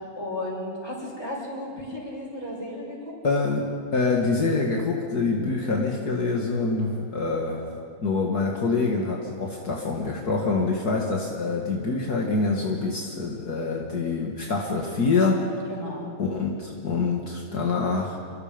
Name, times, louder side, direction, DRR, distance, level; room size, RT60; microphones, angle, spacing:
voice 1, 0.2-3.2 15.7-16.1, left 1 dB, 15° left, -4 dB, 7.1 m, -34 dB
voice 2, 3.2-7.6 8.0-15.4 16.2-18.2, left 3 dB, 65° left, -1 dB, 2.5 m, -25 dB
29.5 x 22.5 x 5.3 m, 2.3 s
omnidirectional pair, 1.8 m